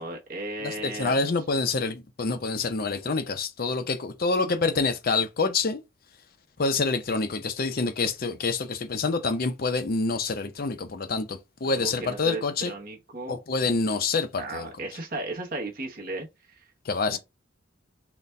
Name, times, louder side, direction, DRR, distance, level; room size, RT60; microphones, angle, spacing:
voice 1, 0.0-1.2 11.7-13.4 14.4-16.6 17.1-17.2, right 2 dB, 45° right, 0.8 m, -35 dB
voice 2, 0.6-5.8 6.6-12.7 13.3-14.7 16.9-17.2, left 4 dB, 45° left, 0.5 m, -27 dB
4.0 x 2.2 x 3.2 m
head